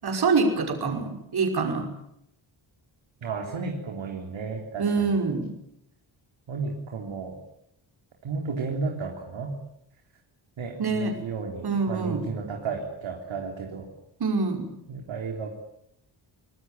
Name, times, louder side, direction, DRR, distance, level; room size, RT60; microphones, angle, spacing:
voice 1, 0.0-1.9 4.8-5.5 10.8-11.2 11.6-12.2 14.2-14.7, right 4 dB, 55° right, 4 dB, 5.8 m, -25 dB
voice 2, 3.2-5.2 6.5-7.4 8.2-9.6 10.6-13.9 14.9-15.6, right 4 dB, 80° right, 1 dB, 3.8 m, -33 dB
24.5 x 20.5 x 9.2 m, 0.76 s
wide cardioid pair, 135°, 46 cm